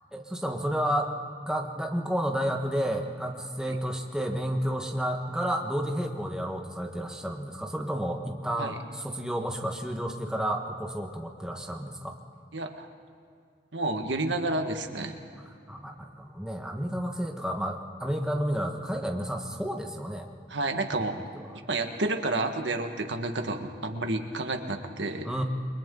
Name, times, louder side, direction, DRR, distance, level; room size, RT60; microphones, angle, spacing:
voice 1, 0.1-1.1 1.4-12.1 15.7-20.3 20.9-21.6 25.2-25.4, equal, 5° right, 2 dB, 1.4 m, -31 dB
voice 2, 12.5-12.9 13.7-15.2 20.5-21.2 21.7-25.4, right 2 dB, 90° right, 5 dB, 1.8 m, -30 dB
29.5 x 23.0 x 3.9 m, 2.4 s
head